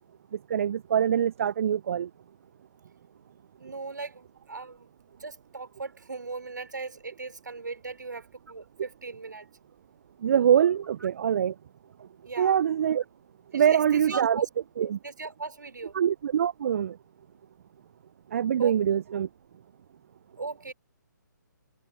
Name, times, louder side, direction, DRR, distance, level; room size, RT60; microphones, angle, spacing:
voice 1, 0.3-2.1 10.2-11.5 12.0-12.1 12.4-13.0 13.5-14.4 14.8-15.0 15.9-17.0 18.3-19.3, right 9 dB, 45° right, 0.7 m, -24 dB
voice 2, 3.6-9.5 11.0-11.1 12.2-12.6 13.5-14.4 14.8-15.9 18.6-18.8 20.4-20.7, right 4 dB, 70° right, 5.7 m, -38 dB
figure-of-eight pair, 135°, 11 cm